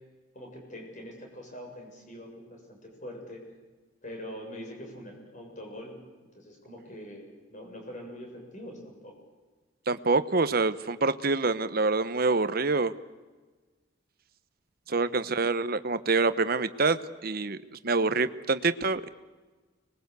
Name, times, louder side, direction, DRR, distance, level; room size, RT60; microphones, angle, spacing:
voice 1, 0.3-3.4 4.0-5.9 6.3-9.2 14.9-15.2, equal, 40° left, 1 dB, 7.4 m, -43 dB
voice 2, 9.9-12.9 14.9-17.6 17.8-19.1, right 3 dB, 50° right, 13 dB, 1.0 m, -26 dB
25.5 x 21.0 x 8.2 m, 1.3 s
head